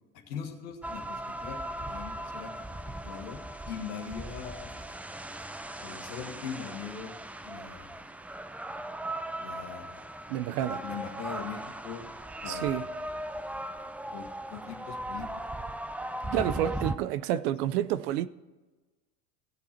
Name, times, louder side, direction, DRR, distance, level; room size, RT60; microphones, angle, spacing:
voice 1, 0.3-2.8 3.0-4.8 5.8-7.1 7.4-8.0 9.4-10.1 10.6-12.1 12.4-12.9 14.1-15.3 16.2-16.5, left 7 dB, 80° left, 1.8 m, -41 dB
sound 1, 0.8-17.0, right 1 dB, 5° right, 0.3 m, -38 dB
voice 2, 10.3-10.8 12.5-12.9 16.3-18.3, right 12 dB, 75° right, 0.7 m, -29 dB
17.5 x 7.1 x 4.4 m
hypercardioid pair, 85°, 46 cm